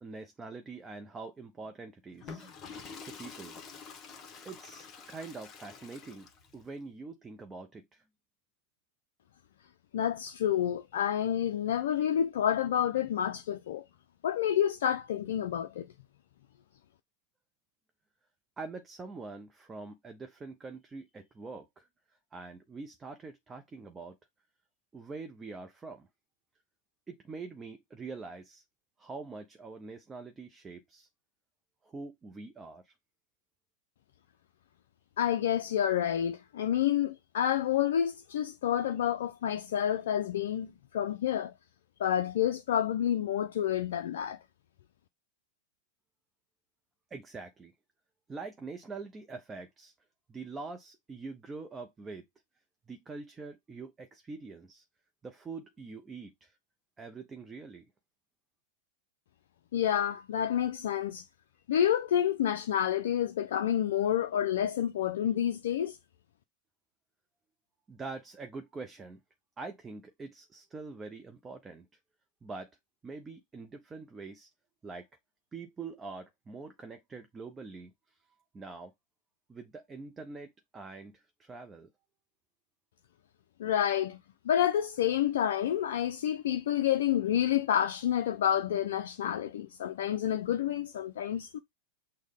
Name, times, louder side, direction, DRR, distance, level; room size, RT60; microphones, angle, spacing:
voice 1, 0.0-2.5 3.0-3.6 4.4-6.3 6.5-8.0 18.6-21.9 22.3-24.2 24.9-26.1 27.1-28.6 29.0-31.1 31.8-32.9 47.1-47.7 48.3-49.9 50.3-52.2 52.9-54.8 55.2-56.5 57.0-57.9 67.9-69.2 69.6-71.9 72.4-72.7 73.0-74.5 74.8-75.1 75.5-78.2 78.5-78.9 79.5-81.9, right 4 dB, 20° right, 0.5 m, -44 dB
Water / Toilet flush, 2.1-6.6, left 5 dB, 30° left, 1.0 m, -47 dB
voice 2, 9.9-13.8 14.2-15.9 35.2-41.5 42.0-44.4 59.7-61.2 61.7-66.0 83.6-84.2 84.5-91.6, left 10 dB, 70° left, 0.3 m, -29 dB
6.2 x 2.1 x 3.5 m
hypercardioid pair, 105°, 0 cm